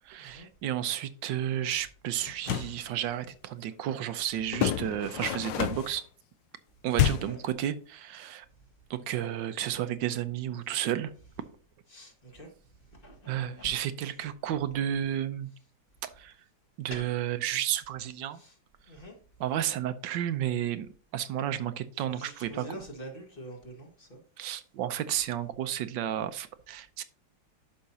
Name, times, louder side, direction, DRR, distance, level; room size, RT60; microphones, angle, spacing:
voice 1, 0.0-6.0 6.8-8.5 8.9-11.1 13.3-15.5 16.0-16.3 16.8-18.4 19.4-22.7 24.4-27.0, right 11 dB, 80° right, 1.3 m, -32 dB
sound 1, 2.3-2.8 4.5-6.0 6.9-7.4, left 10 dB, 75° left, 1.4 m, -28 dB
voice 2, 11.9-12.5 12.9-13.7 16.9-17.1 18.4-18.5 18.9-19.2 22.1-24.2, right 1 dB, 30° left, 1.9 m, -45 dB
11.5 x 5.7 x 2.8 m
omnidirectional pair, 2.0 m